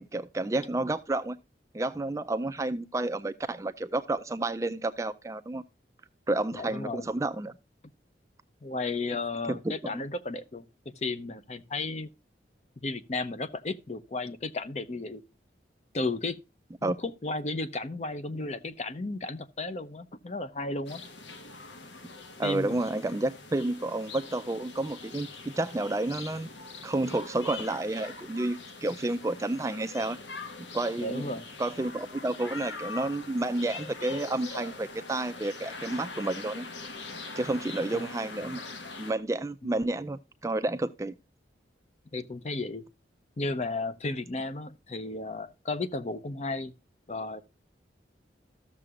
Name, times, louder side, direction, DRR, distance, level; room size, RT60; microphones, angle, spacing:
voice 1, 0.0-1.4 1.7-5.6 6.3-7.5 9.5-10.0 16.8-17.0 22.4-26.5 26.8-30.2 30.6-36.7 37.4-38.6 39.0-41.1, right 2 dB, 15° right, 0.3 m, -30 dB
voice 2, 6.5-7.1 8.6-10.6 11.0-12.1 12.8-15.2 15.9-16.4 16.8-21.0 22.4-22.8 31.0-31.5 37.9-38.0 39.6-39.7 42.1-42.8 43.4-46.7 47.1-47.4, left 2 dB, 40° left, 0.6 m, -34 dB
sound 1, 20.9-39.1, left 4 dB, 85° left, 1.1 m, -43 dB
14.0 x 6.7 x 2.4 m
head